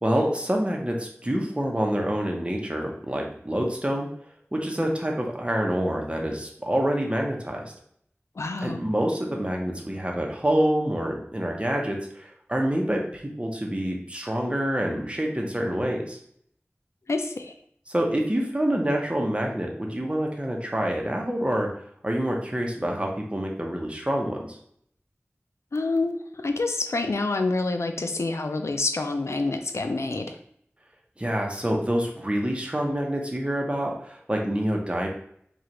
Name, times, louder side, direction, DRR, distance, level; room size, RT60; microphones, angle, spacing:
voice 1, 0.0-4.1 4.5-7.6 8.6-16.2 17.9-21.7 22.0-24.6 31.2-35.1, right 1 dB, 25° right, 0 dB, 0.8 m, -27 dB
voice 2, 8.4-8.8 17.1-17.5 25.7-30.4, left 3 dB, 90° left, 6 dB, 0.4 m, -27 dB
4.9 x 2.4 x 2.9 m, 0.66 s
wide cardioid pair, 45°, 5 cm